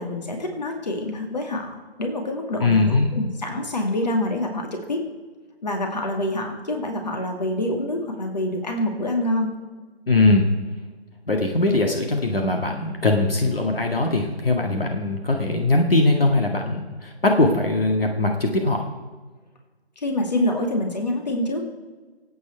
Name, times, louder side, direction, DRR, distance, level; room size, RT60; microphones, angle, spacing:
voice 1, 0.0-5.0 5.6-9.5 20.0-21.6, left 1 dB, 40° left, 3 dB, 2.4 m, -26 dB
voice 2, 2.6-3.1 10.1-10.5 11.3-18.9, left 2 dB, 60° left, 2 dB, 2.0 m, -21 dB
24.5 x 8.9 x 4.6 m, 1.3 s
figure-of-eight pair, 160°, 32 cm